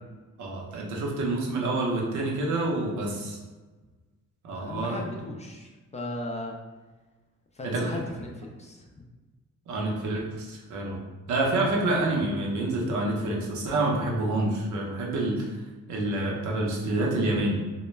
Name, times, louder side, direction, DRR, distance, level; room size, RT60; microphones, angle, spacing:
voice 1, 0.4-3.4 4.4-5.0 7.6-8.0 9.7-11.0 11.3-15.5 15.9-17.6, right 2 dB, 75° right, -1 dB, 0.7 m, -27 dB
voice 2, 4.5-6.6 7.5-9.1, left 2 dB, 25° left, 0 dB, 0.4 m, -37 dB
2.2 x 2.1 x 3.1 m, 1.3 s
cardioid pair, 90°, 30 cm